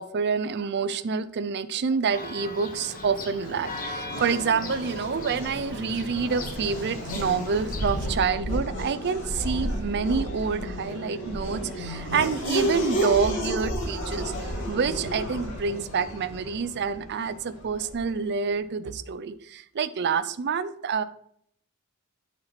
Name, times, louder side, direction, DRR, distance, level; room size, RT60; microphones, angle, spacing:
voice 1, 0.0-21.0, right 5 dB, 50° right, 14 dB, 0.4 m, -27 dB
Church bell, 2.1-8.1, left 2 dB, 40° left, 1.4 m, -39 dB
Race car auto racing / Accelerating revving vroom, 2.6-18.2, equal, 60° left, 2.4 m, -32 dB
9.7 x 4.3 x 4.2 m, 0.68 s
head